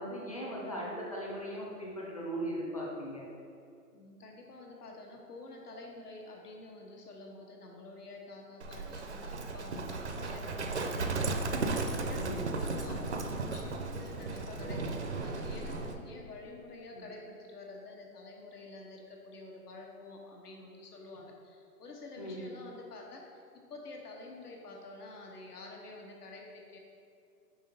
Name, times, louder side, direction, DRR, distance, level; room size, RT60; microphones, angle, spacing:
voice 1, 0.0-3.2 12.2-12.5 16.9-17.0 22.2-22.4, equal, 25° left, -4 dB, 0.7 m, -38 dB
voice 2, 3.9-23.4 23.7-26.8, left 2 dB, 70° left, 0 dB, 1.4 m, -48 dB
Livestock farm animals working animals, 8.6-16.0, right 3 dB, 50° right, 0.5 m, -35 dB
5.5 x 4.0 x 5.2 m, 2.5 s
hypercardioid pair, 175°, 48 cm